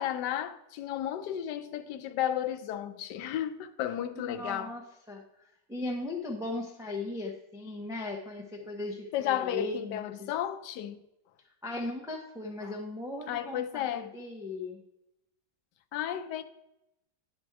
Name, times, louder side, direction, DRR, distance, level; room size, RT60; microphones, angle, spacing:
voice 1, 0.0-4.7 9.1-11.0 12.6-12.7 13.3-14.1 15.9-16.4, left 11 dB, 80° left, 1.2 m, -33 dB
voice 2, 4.1-5.2 5.7-10.3 11.6-14.8, left 2 dB, 5° right, 0.6 m, -37 dB
10.5 x 5.2 x 4.6 m
omnidirectional pair, 1.9 m